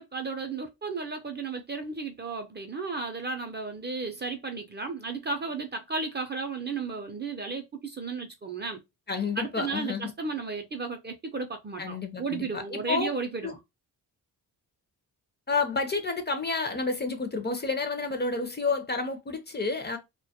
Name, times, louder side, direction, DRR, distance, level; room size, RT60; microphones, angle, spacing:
voice 1, 0.0-8.8 9.4-13.6, right 4 dB, 30° right, 0.4 m, -34 dB
voice 2, 9.1-10.1 11.8-13.1 13.4-13.5 15.5-20.0, left 4 dB, 25° left, 0.4 m, -30 dB
2.2 x 2.1 x 2.7 m
cardioid pair, 70°, 39 cm